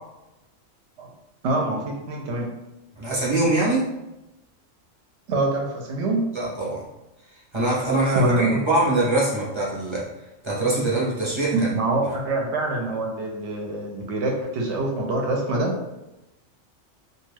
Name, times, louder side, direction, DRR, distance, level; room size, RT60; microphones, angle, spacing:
voice 1, 1.4-2.6 5.3-6.3 8.1-8.6 10.7-10.8 11.5-15.7, right 2 dB, 65° right, 1 dB, 0.8 m, -25 dB
voice 2, 3.0-3.9 6.3-6.8 7.5-10.1 10.4-11.7, right 2 dB, 35° right, -6 dB, 0.5 m, -23 dB
2.5 x 2.3 x 3.2 m, 0.95 s
omnidirectional pair, 1.4 m